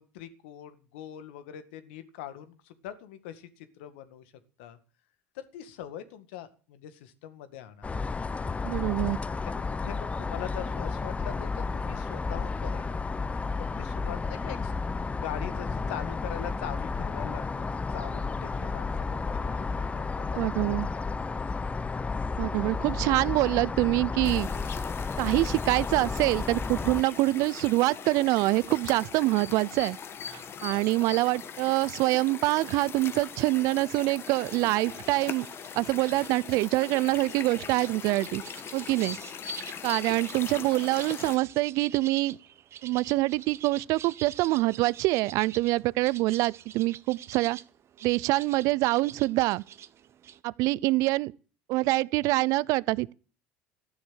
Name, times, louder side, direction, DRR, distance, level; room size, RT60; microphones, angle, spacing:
voice 1, 0.0-4.2 4.6-4.8 5.3-7.9 9.4-13.0 13.6-14.7 15.2-17.6 17.9-21.0 30.8-30.9 39.1-39.2, left 11 dB, 75° left, 1.9 m, -42 dB
sound 1, 7.8-27.0, left 4 dB, 20° left, 0.9 m, -32 dB
voice 2, 8.6-9.2 20.4-20.9 22.4-24.5 25.2-30.0 30.3-35.5 35.7-38.4 38.7-39.2 39.8-42.4 42.8-47.6 48.0-49.6 50.4-51.3 51.7-53.1, right 20 dB, 65° right, 0.7 m, -25 dB
sound 2, 24.2-41.4, left 7 dB, 40° left, 1.5 m, -41 dB
sound 3, 34.3-50.4, right 10 dB, 45° right, 1.2 m, -47 dB
14.0 x 11.5 x 7.7 m
hypercardioid pair, 75°, 6 cm